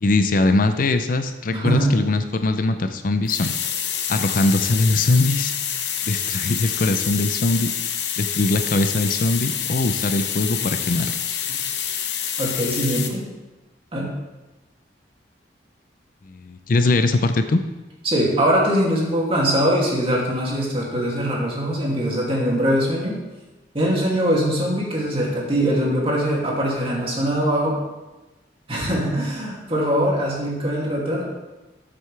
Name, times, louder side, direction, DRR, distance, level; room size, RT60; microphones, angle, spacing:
voice 1, 0.0-3.5 4.1-5.5 6.1-7.7 8.2-11.4 16.3-17.6, left 2 dB, 50° left, 9 dB, 0.5 m, -21 dB
voice 2, 1.5-1.9 11.5-11.6 12.4-13.3 13.9-14.1 18.0-23.2 23.7-27.8 28.7-31.2, equal, 30° right, -4 dB, 2.5 m, -22 dB
sound 1, 3.3-13.1, left 9 dB, 70° left, 0.9 m, -27 dB
13.0 x 7.7 x 3.4 m, 1.1 s
head